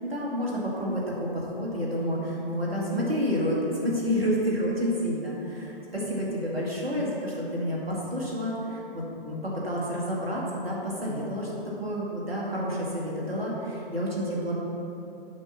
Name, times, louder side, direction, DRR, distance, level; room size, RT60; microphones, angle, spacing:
voice 1, 0.0-11.5 11.8-14.5, equal, 85° right, -4 dB, 2.1 m, -29 dB
7.9 x 5.6 x 5.6 m, 2.9 s
figure-of-eight pair, 125°, 29 cm